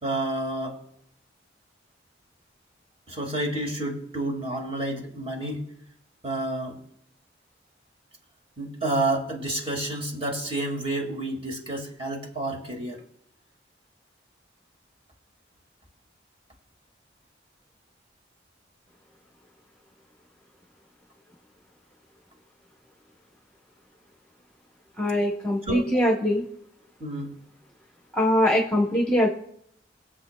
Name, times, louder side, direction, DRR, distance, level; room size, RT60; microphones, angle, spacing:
voice 1, 0.0-0.8 3.1-5.7 6.2-6.8 8.6-13.0 25.7-26.0 27.0-27.3, right 1 dB, 30° right, 1 dB, 1.9 m, -30 dB
voice 2, 25.0-26.4 28.1-29.3, equal, 5° left, -1 dB, 0.9 m, -22 dB
21.5 x 7.6 x 2.2 m, 0.72 s
head